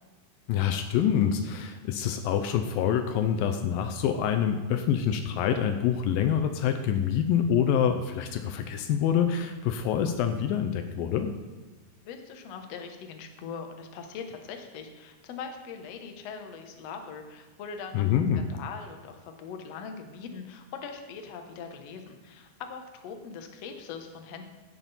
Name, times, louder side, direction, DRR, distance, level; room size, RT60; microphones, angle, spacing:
voice 1, 0.5-11.3 17.9-18.4, left 8 dB, 80° left, 7 dB, 2.3 m, -26 dB
voice 2, 12.0-18.1 18.4-24.4, left 6 dB, 65° left, 5 dB, 1.7 m, -41 dB
16.0 x 7.4 x 4.2 m, 1.2 s
omnidirectional pair, 4.3 m